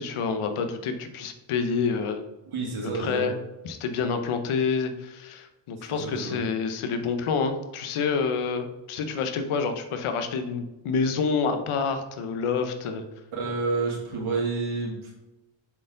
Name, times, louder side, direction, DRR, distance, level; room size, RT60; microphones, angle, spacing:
voice 1, 0.0-2.2 2.8-3.3 3.6-13.0, left 5 dB, 85° left, 7 dB, 0.9 m, -28 dB
voice 2, 2.4-3.3 5.8-6.4 13.3-15.1, right 3 dB, 80° right, -3 dB, 2.4 m, -29 dB
7.3 x 4.4 x 3.8 m, 1.0 s
wide cardioid pair, 180°, 49 cm